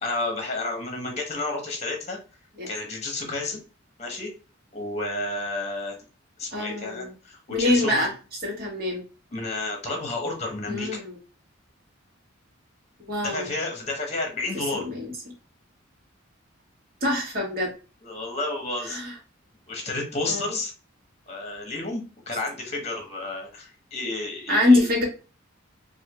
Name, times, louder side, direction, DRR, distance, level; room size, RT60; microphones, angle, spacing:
voice 1, 0.0-2.2 2.7-3.6 4.0-4.3 4.7-6.0 6.4-8.1 9.3-11.0 13.2-14.8 18.0-19.0 19.7-20.7 21.3-24.8, left 2 dB, 30° left, 2 dB, 1.0 m, -31 dB
voice 2, 6.5-7.1 7.5-8.1 8.4-9.0 10.7-11.2 13.0-13.5 14.5-15.1 17.0-17.7 18.8-19.1 20.3-20.5 24.5-25.0, left 2 dB, 45° right, -2 dB, 1.5 m, -24 dB
4.5 x 2.6 x 2.3 m, 0.34 s
head